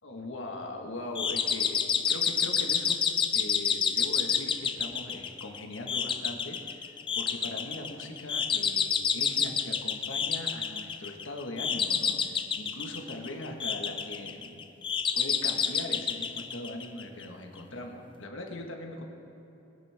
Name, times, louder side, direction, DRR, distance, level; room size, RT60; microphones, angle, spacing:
voice 1, 0.0-14.7 15.1-19.0, left 1 dB, 90° left, 2 dB, 1.5 m, -40 dB
sound 1, 1.1-17.2, left 7 dB, 25° left, 0.4 m, -29 dB
23.0 x 9.3 x 3.5 m, 3.0 s
head